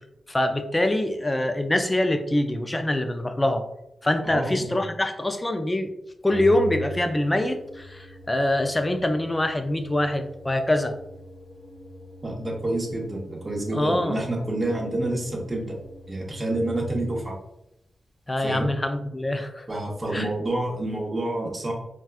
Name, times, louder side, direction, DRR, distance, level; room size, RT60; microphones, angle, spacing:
voice 1, 0.3-3.6 4.0-5.9 6.2-11.0 13.7-14.2 18.3-19.7 20.1-20.3, left 1 dB, 20° left, 7 dB, 0.4 m, -24 dB
voice 2, 4.3-4.7 12.2-15.6 16.1-17.3 18.4-18.7 19.7-21.7, right 1 dB, 30° right, -1 dB, 0.9 m, -28 dB
Organ, 6.3-17.3, equal, 5° right, 0.9 m, -42 dB
4.1 x 2.3 x 2.4 m, 0.84 s
cardioid pair, 75°, 0 cm